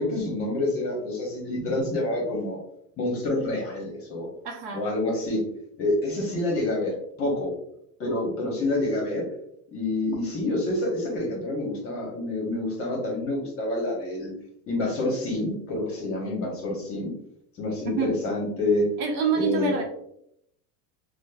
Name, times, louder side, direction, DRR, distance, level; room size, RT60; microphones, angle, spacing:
voice 1, 0.0-2.6 3.0-4.3 4.7-5.4 5.8-7.5 8.0-9.3 9.7-14.3 14.7-17.1 17.6-18.9 19.3-19.7, left 2 dB, 30° left, -1 dB, 0.9 m, -27 dB
voice 2, 4.4-4.8 17.9-18.1 19.0-19.8, right 5 dB, 50° right, 1 dB, 0.8 m, -26 dB
5.0 x 2.1 x 2.2 m, 0.73 s
cardioid pair, 160°, 44 cm